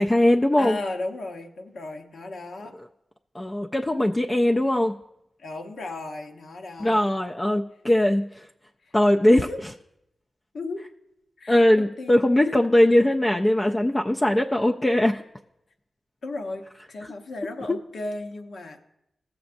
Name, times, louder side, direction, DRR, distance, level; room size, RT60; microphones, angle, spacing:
voice 1, 0.0-0.8 3.3-4.9 6.8-8.5 8.9-9.5 11.5-15.2, left 1 dB, 20° left, 2 dB, 0.3 m, -20 dB
voice 2, 0.6-2.7 5.4-7.1 8.8-8.9 9.3-9.6 10.5-10.8 11.4-12.3 16.2-18.8, left 2 dB, 70° left, 3 dB, 0.9 m, -35 dB
15.5 x 7.0 x 2.6 m, 0.83 s
wide cardioid pair, 130°, 0 cm